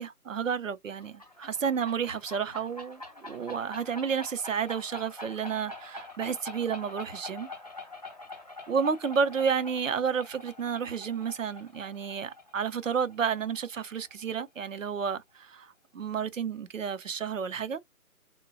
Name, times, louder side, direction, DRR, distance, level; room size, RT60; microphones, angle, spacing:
voice 1, 0.0-7.5 8.7-17.8, right 6 dB, 55° right, 0.6 m, -31 dB
sound 1, 1.0-14.4, left 2 dB, 25° left, 0.6 m, -45 dB
4.0 x 2.2 x 2.3 m
figure-of-eight pair, 155°, 45 cm